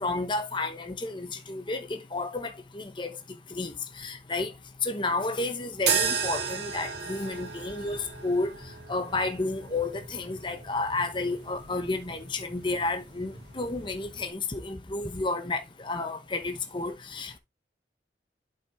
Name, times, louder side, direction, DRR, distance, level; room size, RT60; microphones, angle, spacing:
voice 1, 0.0-3.1 3.6-4.5 4.8-8.5 8.9-17.4, left 2 dB, 25° left, 0.9 m, -31 dB
sound 1, 5.8-14.3, right 6 dB, 70° right, 1.9 m, -35 dB
8.1 x 5.6 x 3.6 m
head